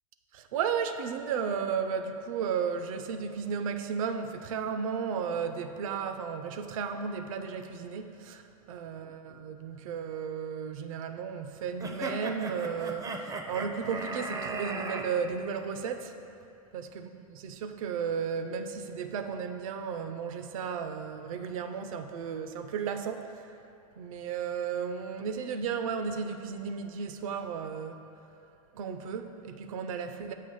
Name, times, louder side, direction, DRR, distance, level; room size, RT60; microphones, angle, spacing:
voice 1, 0.3-8.4 8.7-16.1 16.7-16.9 17.1-23.3 24.0-28.0 28.7-30.3, right 6 dB, 65° right, 8 dB, 0.5 m, -34 dB
sound 1, 11.8-15.0, right 3 dB, 15° right, 0.5 m, -36 dB
7.5 x 3.0 x 5.4 m, 2.7 s
hypercardioid pair, 105°, 19 cm